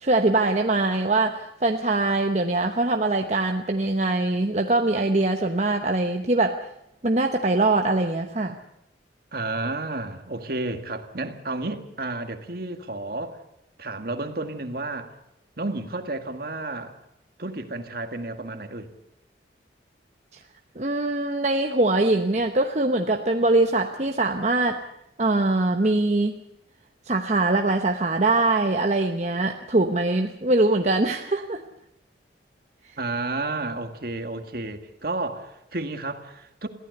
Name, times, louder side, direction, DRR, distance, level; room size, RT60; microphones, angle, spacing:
voice 1, 0.0-6.6 7.0-8.6 20.3-20.4 20.8-24.8 25.2-26.3 27.1-31.6, right 2 dB, 40° right, 4 dB, 1.0 m, -22 dB
voice 2, 9.3-13.4 13.8-15.1 15.6-17.0 17.4-18.9 33.0-36.7, right 2 dB, 55° right, 7 dB, 1.9 m, -31 dB
22.5 x 15.0 x 8.0 m, 0.84 s
head